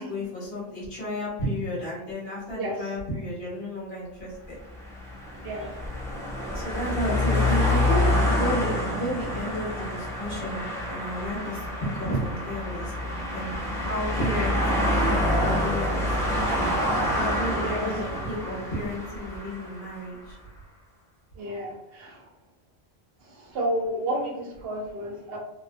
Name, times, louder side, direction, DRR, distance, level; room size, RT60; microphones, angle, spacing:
voice 1, 0.0-4.6 6.5-12.9 13.3-16.1 17.2-20.4, equal, 70° left, -7 dB, 1.4 m, -32 dB
sound 1, 4.6-20.0, left 1 dB, 5° left, 0.5 m, -27 dB
voice 2, 21.4-22.2 23.5-25.4, right 1 dB, 70° right, -1 dB, 0.9 m, -31 dB
2.9 x 2.1 x 2.5 m, 0.95 s
omnidirectional pair, 1.1 m